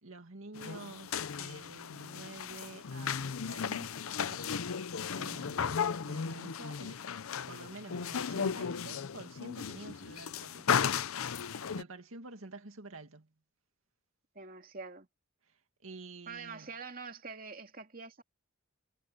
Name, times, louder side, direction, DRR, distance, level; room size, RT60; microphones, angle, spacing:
voice 1, 0.0-4.8 5.2-7.0 7.5-10.7 11.8-13.3 15.4-16.7, right 3 dB, 80° right, 2.2 m, -49 dB
sound 1, 0.5-11.8, left 7 dB, 85° left, 0.6 m, -35 dB
voice 2, 14.3-15.1 16.3-18.2, right 4 dB, 45° right, 2.4 m, -45 dB
head